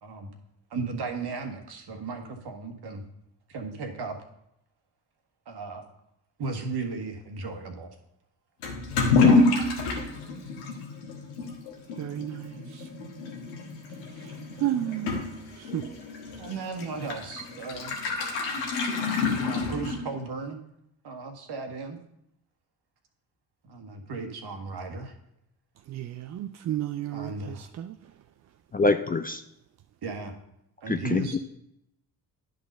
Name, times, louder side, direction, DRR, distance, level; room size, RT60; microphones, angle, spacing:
voice 1, 0.7-3.0 3.5-4.2 5.4-5.8 6.4-8.0 16.4-18.0 19.4-20.6 21.0-22.0 23.6-25.1 27.1-27.7 30.0-30.3 30.8-31.4, right 4 dB, 55° right, 4 dB, 1.5 m, -35 dB
Toilet flush / Liquid, 8.6-20.3, left 3 dB, 80° left, 1.3 m, -28 dB
voice 2, 12.0-12.9 14.1-15.9 25.9-28.0, right 12 dB, 40° right, 8 dB, 0.4 m, -33 dB
voice 3, 28.7-29.4 30.9-31.4, left 3 dB, 20° left, 8 dB, 0.4 m, -25 dB
10.0 x 4.0 x 5.4 m, 0.79 s
hypercardioid pair, 50°, 46 cm